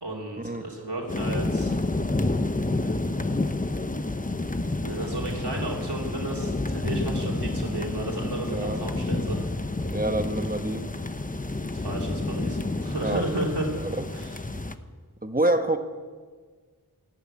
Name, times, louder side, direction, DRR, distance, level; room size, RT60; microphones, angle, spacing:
voice 1, 0.0-1.7 2.8-3.1 4.8-9.4 11.7-13.7 14.1-14.4, right 1 dB, 80° right, -2 dB, 2.8 m, -33 dB
sound 1, 1.1-14.7, left 2 dB, 20° left, 0.8 m, -29 dB
voice 2, 9.9-10.9 13.0-13.2 13.8-14.0 15.2-15.8, right 1 dB, 20° right, 7 dB, 1.2 m, -26 dB
13.5 x 11.5 x 8.8 m, 1.5 s
wide cardioid pair, 40°, 40 cm